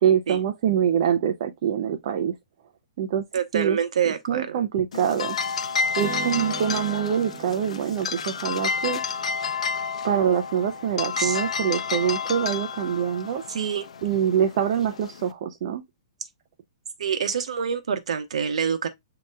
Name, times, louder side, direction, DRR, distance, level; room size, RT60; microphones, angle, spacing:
voice 1, 0.0-2.3 3.0-3.2 3.5-3.8 4.1-5.4 6.0-9.0 10.0-13.4 14.0-15.8, right 9 dB, 50° right, 0.5 m, -24 dB
voice 2, 3.3-4.6 11.2-11.4 13.5-13.9 17.0-18.9, right 7 dB, 85° right, 0.9 m, -26 dB
sound 1, 4.9-15.3, left 5 dB, 85° left, 0.6 m, -30 dB
Acoustic guitar, 6.0-9.6, right 10 dB, 25° right, 0.9 m, -39 dB
7.4 x 2.9 x 2.2 m
hypercardioid pair, 155°, 3 cm